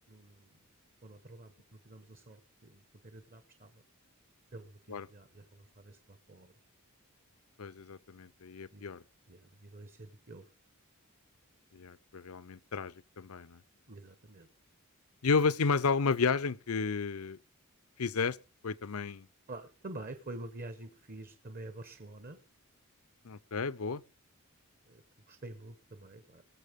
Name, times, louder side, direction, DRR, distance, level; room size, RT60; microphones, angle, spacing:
voice 1, 0.1-0.6 1.0-3.8 4.5-6.5 8.7-8.8 9.3-10.5 13.9-14.5 19.5-22.4 24.9-26.4, right 2 dB, 40° right, 1.2 m, -48 dB
voice 2, 7.6-9.0 11.7-13.6 15.2-17.4 18.0-18.4 18.6-19.3 23.2-24.0, left 5 dB, 75° left, 0.7 m, -32 dB
21.5 x 7.2 x 5.2 m
head